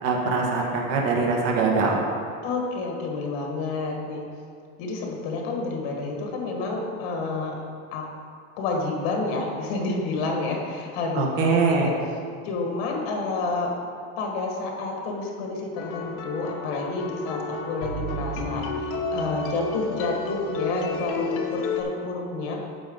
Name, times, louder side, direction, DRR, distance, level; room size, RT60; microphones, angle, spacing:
voice 1, 0.0-2.0 11.1-11.9, right 4 dB, 50° right, -1 dB, 1.3 m, -23 dB
voice 2, 2.4-4.3 4.8-7.6 7.9-8.1 8.6-11.9 12.4-13.7 14.2-22.6, left 3 dB, 75° left, 0 dB, 1.8 m, -29 dB
sound 1, 15.8-21.8, left 3 dB, 45° left, 0.8 m, -31 dB
9.1 x 7.0 x 3.9 m, 2.3 s
cardioid pair, 170°, 31 cm